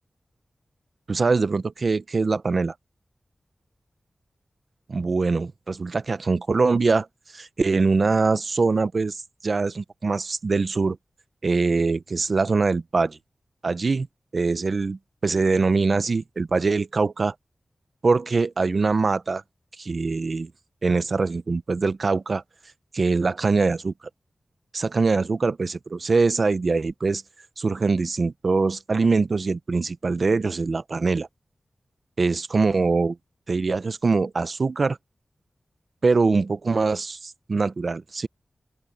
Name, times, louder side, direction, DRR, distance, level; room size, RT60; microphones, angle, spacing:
voice 1, 1.1-2.7 4.9-7.1 7.3-11.0 11.4-13.2 13.6-14.1 14.3-17.3 18.0-19.4 19.8-20.5 20.8-22.4 22.9-23.9 24.7-27.2 27.6-31.3 32.2-33.2 33.5-35.0 36.0-38.3, right 4 dB, 60° right, 0.8 m, -23 dB
open air
cardioid pair, 50°, 0 cm